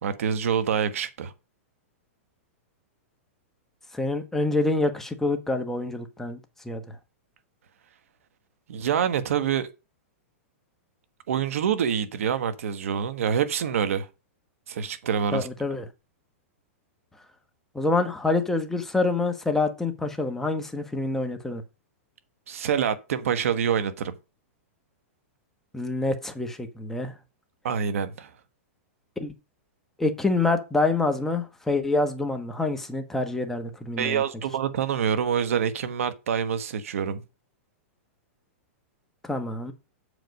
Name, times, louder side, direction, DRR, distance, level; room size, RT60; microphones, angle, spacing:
voice 1, 0.0-1.3 8.7-9.7 11.3-14.1 14.7-15.5 22.5-24.1 27.6-28.3 34.0-37.2, right 8 dB, 75° right, 1.2 m, -26 dB
voice 2, 3.9-6.4 6.6-6.8 15.3-15.8 17.7-21.6 25.7-27.1 29.2-29.3 30.0-34.2 39.2-39.7, left 2 dB, 5° left, 1.1 m, -26 dB
7.7 x 5.1 x 5.2 m
hypercardioid pair, 145°, 7 cm